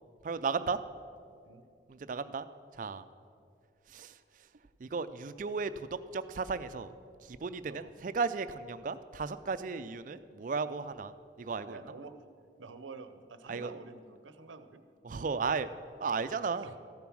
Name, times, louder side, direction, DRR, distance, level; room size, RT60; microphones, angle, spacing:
voice 1, 0.2-0.8 1.9-2.5 2.7-3.0 3.9-4.1 4.8-6.9 7.2-11.8 13.5-13.7 15.0-15.7 16.0-16.7, right 4 dB, 45° right, 13 dB, 0.4 m, -35 dB
voice 2, 11.6-12.2 12.6-14.8 16.5-16.8, right 4 dB, 90° right, 10 dB, 0.7 m, -48 dB
14.5 x 7.0 x 6.2 m, 2.4 s
head